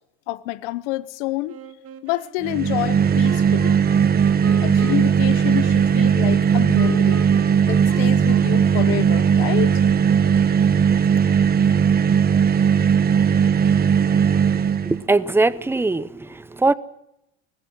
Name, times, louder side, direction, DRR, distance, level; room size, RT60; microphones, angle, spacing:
voice 1, 0.3-1.6 2.0-3.8 4.6-7.2 7.7-9.8, left 18 dB, 85° left, 0.9 m, -28 dB
Wind instrument woodwind instrument, 1.5-10.9, right 8 dB, 40° right, 2.1 m, -39 dB
sound 1, 2.4-15.0, right 7 dB, 25° right, 1.1 m, -18 dB
voice 2, 14.9-16.7, right 3 dB, 5° right, 0.7 m, -21 dB
19.5 x 14.5 x 9.9 m
cardioid pair, 135°, 35 cm